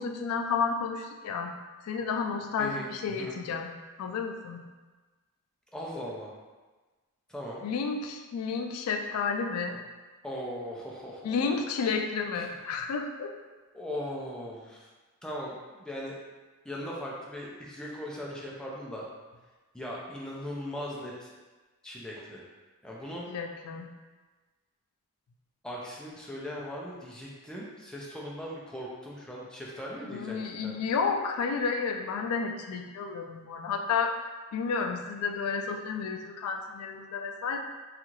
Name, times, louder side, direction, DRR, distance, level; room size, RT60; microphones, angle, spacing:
voice 1, 0.0-1.5 1.8-3.7 4.0-4.6 7.6-9.8 11.2-13.3 23.3-23.9 30.1-34.2 34.5-37.6, left 5 dB, 90° left, 5 dB, 0.3 m, -31 dB
voice 2, 2.6-3.4 5.7-6.3 7.3-7.6 10.2-11.6 12.3-12.5 13.7-14.9 15.2-16.2 16.6-19.1 19.7-21.3 21.8-22.5 22.8-23.2 25.6-30.8, equal, 5° left, -4 dB, 0.4 m, -39 dB
2.7 x 2.4 x 2.9 m, 1.3 s
head